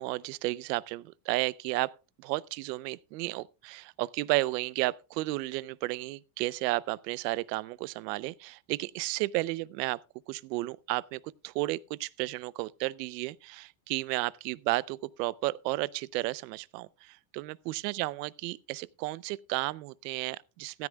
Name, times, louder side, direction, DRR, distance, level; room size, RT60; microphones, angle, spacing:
voice 1, 0.0-1.9 2.2-10.0 10.3-20.9, right 20 dB, 85° right, 0.7 m, -33 dB
15.0 x 13.5 x 2.3 m
cardioid pair, 160°, 48 cm